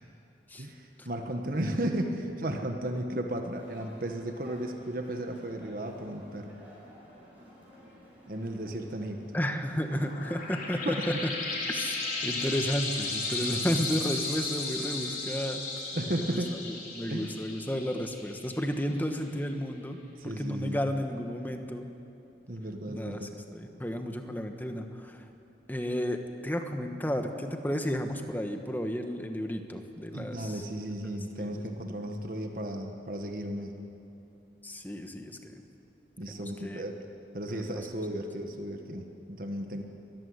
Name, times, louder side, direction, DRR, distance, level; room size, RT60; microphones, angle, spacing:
voice 1, 0.6-6.5 8.3-9.2 10.8-11.1 13.4-13.8 15.9-16.5 17.1-17.3 20.2-20.8 22.5-23.3 30.1-33.8 36.2-37.0 37.3-39.8, right 1 dB, 50° right, 4 dB, 1.4 m, -34 dB
sound 1, 3.5-10.8, equal, 10° right, 6.7 m, -54 dB
voice 2, 9.3-11.3 11.7-15.6 16.3-16.4 16.6-20.0 20.2-21.9 22.9-25.2 25.7-30.6 31.4-31.5 34.6-35.6 36.3-36.8 37.5-37.8 39.7-39.8, equal, 10° left, 5 dB, 1.3 m, -33 dB
sound 2, 9.7-18.9, left 3 dB, 50° left, 4.3 m, -35 dB
23.0 x 15.0 x 9.6 m, 2.8 s
head